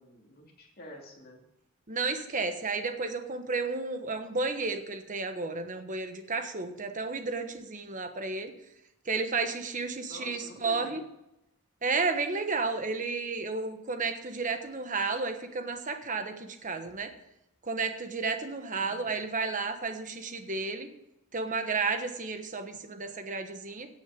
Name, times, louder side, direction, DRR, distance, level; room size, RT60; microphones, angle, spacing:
voice 1, 0.0-1.4 10.1-11.0 18.8-19.2, equal, 45° left, -1 dB, 3.1 m, -48 dB
voice 2, 1.9-8.5 9.0-11.0 11.8-17.1 17.6-20.9 21.3-23.9, right 4 dB, 35° right, 7 dB, 1.2 m, -32 dB
17.0 x 6.4 x 5.3 m, 0.86 s
head